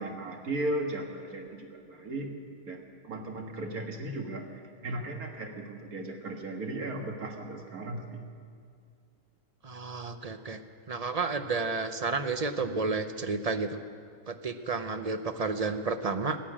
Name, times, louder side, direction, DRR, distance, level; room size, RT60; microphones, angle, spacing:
voice 1, 0.0-2.3 2.7-4.5 4.8-8.2, right 1 dB, 85° right, 2 dB, 2.2 m, -36 dB
voice 2, 9.6-10.6 10.9-13.8 14.3-16.4, right 4 dB, 40° right, 9 dB, 0.5 m, -31 dB
15.5 x 10.5 x 8.8 m, 2.2 s
omnidirectional pair, 1.5 m